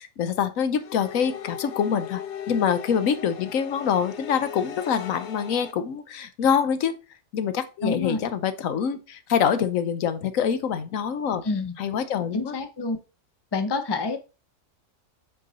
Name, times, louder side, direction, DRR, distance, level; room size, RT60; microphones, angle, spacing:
voice 1, 0.0-2.2 2.5-7.0 7.3-11.4 11.8-12.6, left 7 dB, 80° left, 12 dB, 1.2 m, -25 dB
sound 1, 0.8-5.7, left 8 dB, 60° left, 1.1 m, -38 dB
voice 2, 7.8-8.2 11.4-11.7 12.3-13.0 13.5-14.2, left 3 dB, 25° left, 8 dB, 0.7 m, -27 dB
7.9 x 4.6 x 4.1 m, 0.31 s
omnidirectional pair, 1.4 m